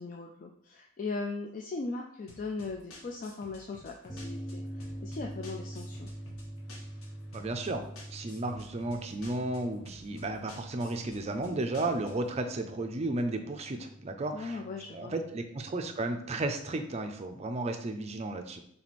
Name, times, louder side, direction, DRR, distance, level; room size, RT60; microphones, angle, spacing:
voice 1, 0.0-6.1 14.3-15.2, left 3 dB, 40° left, 1 dB, 0.3 m, -39 dB
sound 1, 2.3-12.4, left 2 dB, 85° left, 0.9 m, -53 dB
sound 2, 4.1-17.0, right 1 dB, 5° left, 1.5 m, -45 dB
voice 2, 7.3-14.6 14.9-18.6, right 2 dB, 30° right, 5 dB, 0.4 m, -34 dB
3.4 x 3.1 x 4.1 m, 0.69 s
head